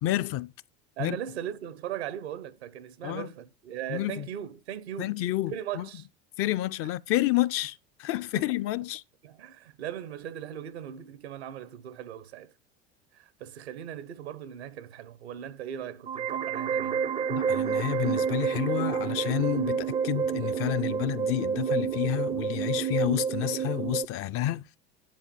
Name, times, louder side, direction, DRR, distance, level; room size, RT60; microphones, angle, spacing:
voice 1, 0.0-0.5 1.0-1.2 3.0-3.3 3.9-4.3 5.0-5.9 6.4-9.0 17.3-24.6, left 15 dB, 45° left, 0.5 m, -29 dB
voice 2, 1.0-5.2 5.5-6.1 9.2-12.5 13.1-17.0, right 10 dB, 85° right, 1.0 m, -38 dB
sound 1, 16.1-24.1, right 7 dB, 20° right, 0.4 m, -29 dB
9.8 x 3.6 x 6.9 m
hypercardioid pair, 90°, 31 cm